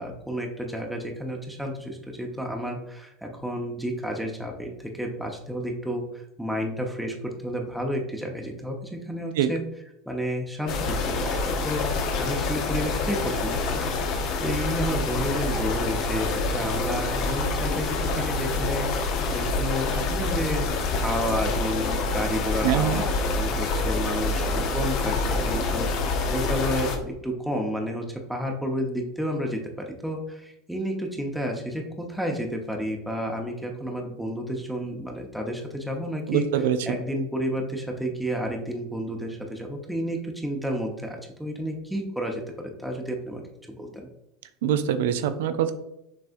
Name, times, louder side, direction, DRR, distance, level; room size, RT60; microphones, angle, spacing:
voice 1, 0.0-9.6 10.1-11.9 12.2-13.9 14.4-20.7 21.0-36.5 36.8-44.1, equal, ahead, 1 dB, 0.8 m, -31 dB
sound 1, 10.7-27.0, left 3 dB, 50° left, 0.7 m, -27 dB
voice 2, 22.6-23.0 36.3-36.9 44.6-45.7, right 9 dB, 65° right, 11 dB, 0.4 m, -24 dB
6.3 x 3.3 x 2.5 m, 0.85 s
figure-of-eight pair, 80°, 0 cm